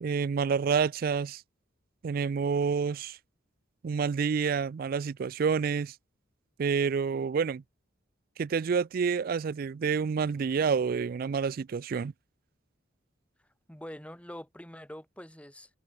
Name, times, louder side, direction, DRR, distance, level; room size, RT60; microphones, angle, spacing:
voice 1, 0.0-1.4 2.0-3.2 3.8-5.9 6.6-7.6 8.4-12.1, right 6 dB, 50° right, 0.3 m, -28 dB
voice 2, 13.7-15.7, equal, 5° left, 6.3 m, -44 dB
head